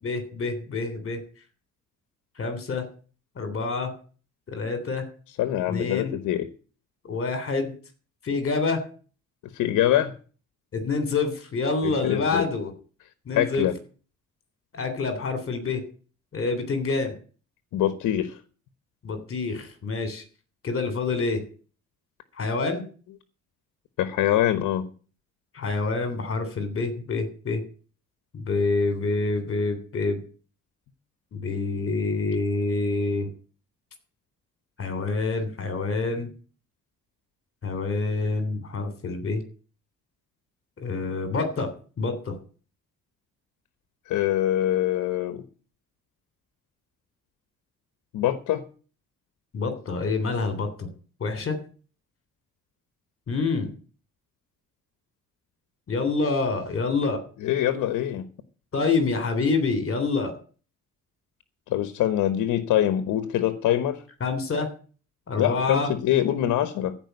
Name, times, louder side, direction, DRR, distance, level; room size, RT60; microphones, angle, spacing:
voice 1, 0.0-1.2 2.4-2.9 3.4-3.9 4.5-5.0 5.7-6.1 7.0-7.7 8.2-8.8 10.7-12.7 13.3-13.7 14.7-15.8 16.3-17.1 19.0-20.2 20.6-21.4 22.4-22.8 25.5-27.6 28.3-30.2 31.3-33.3 34.8-36.3 37.6-39.4 40.8-41.7 42.0-42.3 49.5-50.9 51.2-51.6 53.3-53.7 55.9-57.2 58.7-60.3 64.2-64.7 65.3-65.9, left 3 dB, 45° left, 9 dB, 3.3 m, -27 dB
voice 2, 5.4-6.5 9.5-10.1 11.8-12.5 13.3-13.7 17.7-18.4 24.0-24.9 44.1-45.4 48.1-48.6 57.4-58.3 61.7-64.0 65.4-67.0, left 12 dB, 85° left, 12 dB, 1.2 m, -24 dB
15.0 x 5.2 x 9.2 m, 0.41 s
cardioid pair, 90°, 30 cm